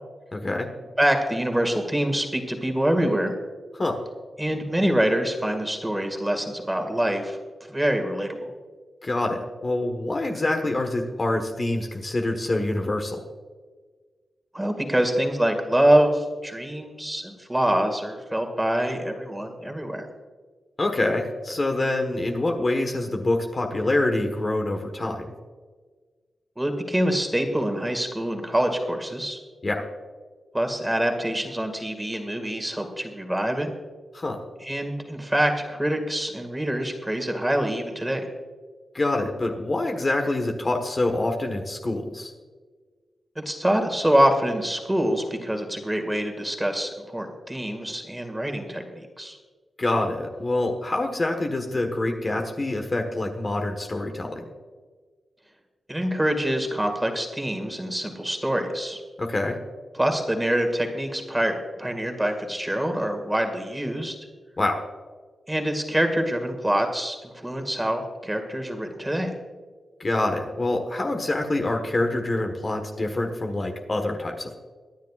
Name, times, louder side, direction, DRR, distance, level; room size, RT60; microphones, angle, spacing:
voice 1, 0.3-0.7 3.7-4.0 9.0-13.2 20.8-25.3 29.6-29.8 34.1-34.4 38.9-42.3 49.8-54.4 59.2-59.5 64.6-64.8 70.0-74.5, left 2 dB, 35° left, 4 dB, 1.4 m, -26 dB
voice 2, 1.0-3.3 4.4-7.4 7.7-8.5 14.5-20.1 26.6-29.4 30.5-33.7 34.6-38.3 43.4-49.4 55.9-59.0 59.9-64.2 65.5-69.3, right 1 dB, 10° right, 4 dB, 2.0 m, -25 dB
23.5 x 10.5 x 2.4 m, 1.4 s
wide cardioid pair, 105°, 0 cm